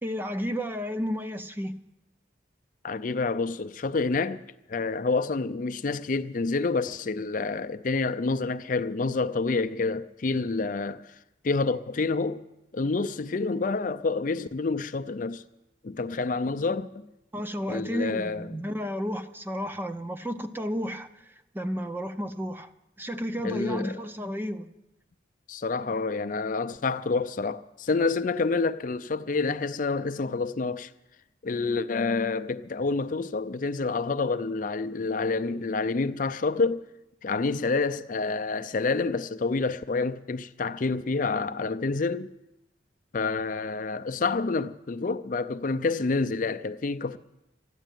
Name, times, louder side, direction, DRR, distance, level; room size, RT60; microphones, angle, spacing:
voice 1, 0.0-1.7 17.3-22.7 23.0-24.7, equal, 10° right, 0.6 m, -32 dB
voice 2, 2.8-4.4 4.7-11.1 11.4-12.4 12.7-15.4 15.8-17.0 17.7-18.5 23.4-24.0 25.5-30.9 31.4-36.8 37.2-42.3 43.1-47.2, left 3 dB, 45° left, 0.5 m, -28 dB
13.0 x 11.5 x 9.1 m
head